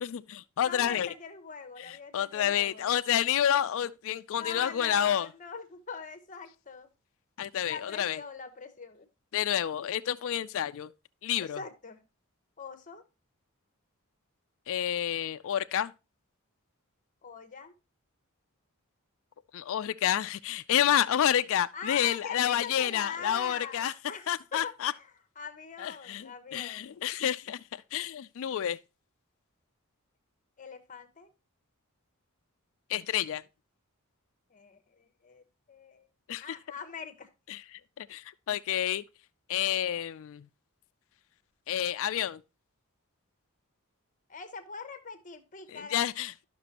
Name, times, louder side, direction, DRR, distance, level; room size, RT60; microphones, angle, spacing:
voice 1, 0.0-1.1 1.9-5.3 7.4-8.2 9.3-10.9 11.2-11.6 14.7-15.9 19.5-23.9 24.3-24.9 25.8-28.8 32.9-33.4 36.3-36.6 37.5-37.6 38.0-39.0 39.5-40.5 41.7-42.4 45.7-46.5, left 10 dB, 65° left, 0.4 m, -29 dB
voice 2, 0.6-2.9 4.4-6.9 7.6-9.1 11.4-12.0 12.6-13.0 17.2-17.7 21.7-26.9 30.6-31.3 34.5-36.1 36.4-37.3 44.3-46.1, left 5 dB, 35° left, 0.9 m, -42 dB
12.0 x 5.9 x 2.9 m
head